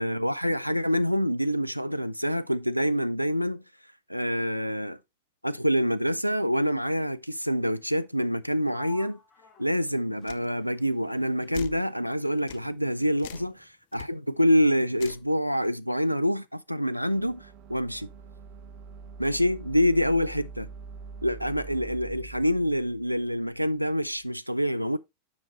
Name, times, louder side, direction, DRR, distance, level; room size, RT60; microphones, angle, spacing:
voice 1, 0.0-3.6 4.1-5.0 5.4-9.2 9.6-13.5 13.9-18.1 19.2-20.7 21.2-25.0, equal, 90° right, 0.4 m, -26 dB
Sliding door, 8.7-12.3 12.5-13.9, left 4 dB, 30° left, 1.4 m, -52 dB
sound 1, 10.3-10.4 11.5-11.8 12.5-12.6 13.2-13.5 13.9-14.1 15.0-15.3, left 13 dB, 55° left, 0.5 m, -41 dB
sound 2, 17.1-24.2, right 4 dB, 40° right, 1.0 m, -45 dB
7.2 x 5.8 x 3.1 m
figure-of-eight pair, 90°, 0 cm